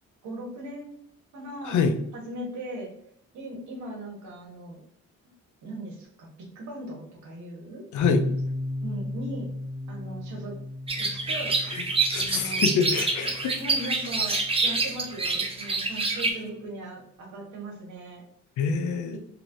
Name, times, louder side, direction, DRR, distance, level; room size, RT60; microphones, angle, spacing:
voice 1, 0.2-1.1 1.3-1.8 2.1-2.9 3.3-4.8 5.6-7.8 8.8-9.5 9.9-10.5 11.0-11.5 12.1-12.6 13.6-18.2 19.1-19.2, right 1 dB, 70° right, -1 dB, 1.2 m, -38 dB
voice 2, 1.6-2.0 7.9-8.2 11.7-11.8 12.1-13.6 18.6-19.2, left 6 dB, 75° left, 6 dB, 0.6 m, -25 dB
sound 1, 8.0-15.7, left 1 dB, 10° left, 1.3 m, -36 dB
sound 2, 10.9-16.3, right 3 dB, 20° right, 0.5 m, -27 dB
3.1 x 2.8 x 2.6 m, 0.71 s
cardioid pair, 90°, 30 cm